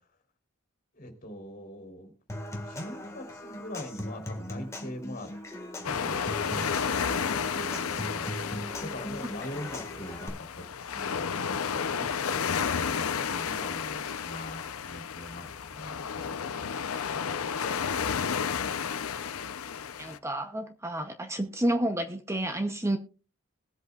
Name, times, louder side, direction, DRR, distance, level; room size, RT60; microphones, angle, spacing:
voice 1, 0.9-2.1 2.6-5.3 5.8-8.3 8.8-16.5, left 1 dB, 45° left, 4 dB, 3.5 m, -42 dB
Human voice / Acoustic guitar / Percussion, 2.3-10.3, equal, 15° left, 1.7 m, -39 dB
sound 1, 5.8-20.2, left 7 dB, 90° left, 0.6 m, -32 dB
voice 2, 20.0-23.0, right 1 dB, 15° right, 6 dB, 0.7 m, -30 dB
21.0 x 8.0 x 2.4 m, 0.35 s
head